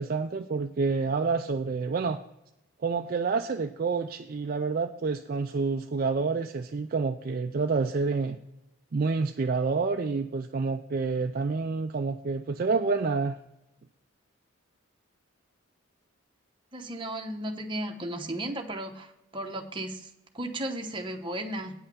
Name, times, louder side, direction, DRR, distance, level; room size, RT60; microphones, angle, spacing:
voice 1, 0.0-2.2 2.8-8.4 8.9-13.4, right 4 dB, 40° right, 6 dB, 0.4 m, -28 dB
voice 2, 16.7-20.1 20.3-21.7, right 1 dB, 20° right, 3 dB, 0.9 m, -35 dB
8.9 x 5.5 x 6.9 m, 0.87 s
head